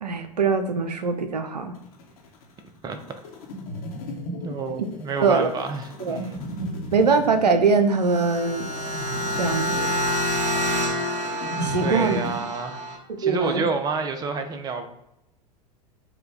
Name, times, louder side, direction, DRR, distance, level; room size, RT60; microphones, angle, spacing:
voice 1, 0.0-1.7 4.8-4.9 5.2-5.5 6.0-6.2 6.9-8.6 9.3-9.9 11.6-12.2 13.2-13.6, right 4 dB, 85° right, 8 dB, 0.4 m, -22 dB
sound 1, 1.7-12.4, equal, 60° left, 0.9 m, -35 dB
voice 2, 4.4-6.4 11.8-12.9 13.2-14.9, right 4 dB, 20° right, 7 dB, 0.5 m, -29 dB
sound 2, 7.9-13.0, equal, 40° right, 1.2 m, -27 dB
4.4 x 2.2 x 3.7 m, 0.83 s
figure-of-eight pair, 85°, 20 cm